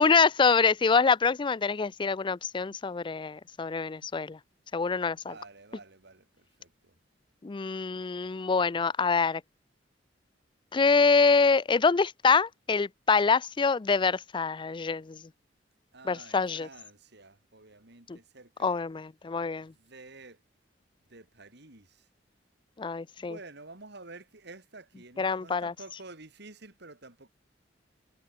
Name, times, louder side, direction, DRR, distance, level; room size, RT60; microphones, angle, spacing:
voice 1, 0.0-4.4 4.7-5.3 7.4-9.4 10.7-15.2 16.1-16.7 18.1-18.2 18.6-19.7 22.8-23.4 25.2-25.7, left 5 dB, 25° left, 0.4 m, -25 dB
voice 2, 5.2-7.0 15.9-18.8 19.6-20.4 21.1-22.1 23.2-27.3, right 3 dB, 60° right, 3.6 m, -50 dB
head